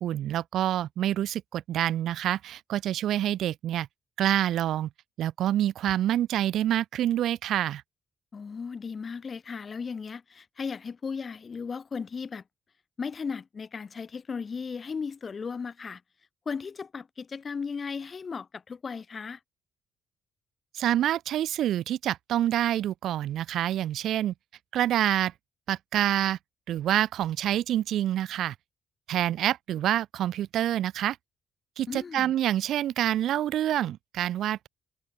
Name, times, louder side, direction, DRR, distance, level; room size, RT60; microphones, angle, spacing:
voice 1, 0.0-3.9 4.2-4.9 5.2-7.8 20.7-24.3 24.7-25.3 25.7-26.4 26.7-28.5 29.1-31.2 31.8-34.7, right 12 dB, 75° right, 1.2 m, -27 dB
voice 2, 8.3-12.4 13.0-16.0 16.5-19.4 31.9-32.3, left 5 dB, 40° left, 4.1 m, -36 dB
cardioid pair, 90°, 0 cm